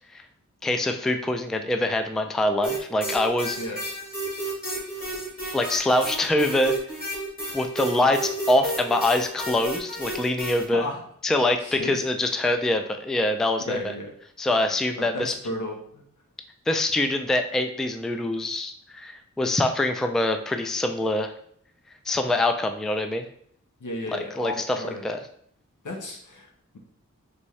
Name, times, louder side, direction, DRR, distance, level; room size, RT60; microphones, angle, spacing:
voice 1, 0.6-3.6 5.5-6.7 7.5-10.9 11.2-13.9 14.4-15.3 16.7-21.3 22.1-23.3 24.1-25.2, left 1 dB, ahead, 6 dB, 0.3 m, -24 dB
sound 1, 2.6-10.6, right 1 dB, 30° left, 1.8 m, -32 dB
voice 2, 11.6-12.0 13.7-14.1 15.0-16.0 23.8-25.0 25.8-26.5, left 1 dB, 80° left, 1 dB, 1.0 m, -33 dB
4.1 x 3.5 x 3.2 m, 0.64 s
wide cardioid pair, 85°, 31 cm